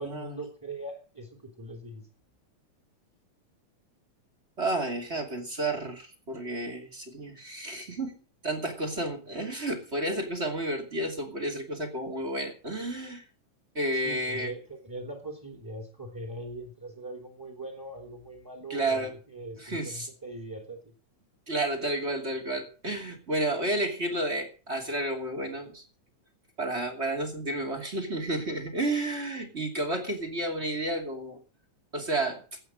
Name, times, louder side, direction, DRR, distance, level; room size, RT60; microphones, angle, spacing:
voice 1, 0.0-2.1 13.9-20.9, right 1 dB, 5° right, 4 dB, 2.6 m, -41 dB
voice 2, 4.6-8.2 8.4-13.2 13.7-14.5 18.7-19.1 19.6-20.1 21.5-25.8 26.6-31.4 31.9-32.4, right 1 dB, 20° right, 4 dB, 2.5 m, -31 dB
14.5 x 8.8 x 7.5 m, 0.39 s
omnidirectional pair, 3.4 m